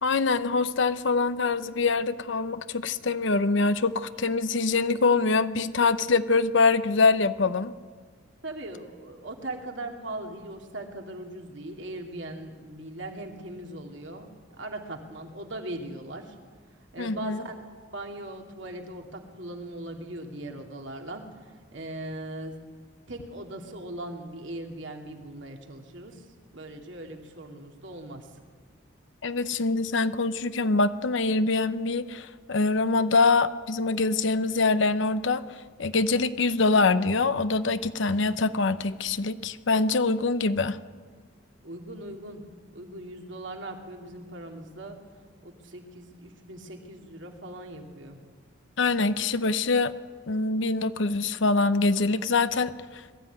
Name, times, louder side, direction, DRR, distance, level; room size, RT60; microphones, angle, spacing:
voice 1, 0.0-7.7 17.0-17.4 29.2-40.8 48.8-49.9 50.3-53.0, left 3 dB, 70° left, 12 dB, 0.7 m, -24 dB
voice 2, 8.4-14.3 14.6-16.3 16.9-17.5 17.9-21.2 21.7-22.6 23.1-26.2 26.5-28.3 41.6-42.4 42.7-45.0 45.4-48.2, right 1 dB, 70° right, 3 dB, 2.5 m, -39 dB
21.5 x 13.5 x 9.4 m, 1.5 s
head